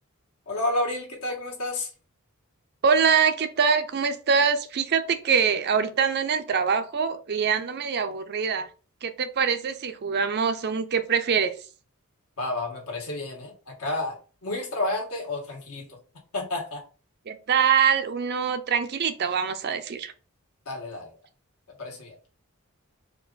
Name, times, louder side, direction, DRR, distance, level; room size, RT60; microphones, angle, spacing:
voice 1, 0.5-1.9 12.4-15.9 16.3-16.8 20.6-21.1 21.8-22.2, left 2 dB, 75° left, 1 dB, 1.6 m, -30 dB
voice 2, 2.8-8.7 9.0-11.5 17.3-20.1, right 6 dB, 45° right, 9 dB, 0.5 m, -24 dB
4.4 x 2.5 x 3.9 m, 0.36 s
head